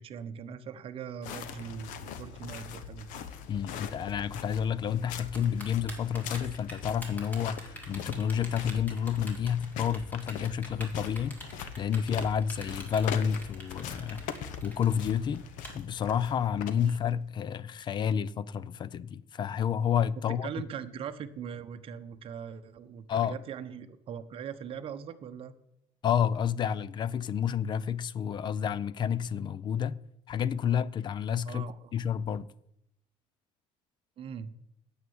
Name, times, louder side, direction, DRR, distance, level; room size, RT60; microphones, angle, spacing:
voice 1, 0.0-3.2 16.8-17.0 20.3-25.5 31.5-31.9 34.2-34.5, right 7 dB, 40° right, 0.9 m, -41 dB
sound 1, 1.2-17.3, left 7 dB, 70° left, 1.1 m, -42 dB
voice 2, 3.5-15.5 15.7-20.5 23.1-23.3 26.0-30.0 30.3-32.5, left 8 dB, 35° left, 0.4 m, -30 dB
Typing, 5.3-15.7, right 1 dB, 10° left, 2.6 m, -45 dB
9.6 x 8.0 x 7.1 m
cardioid pair, 140°, 14 cm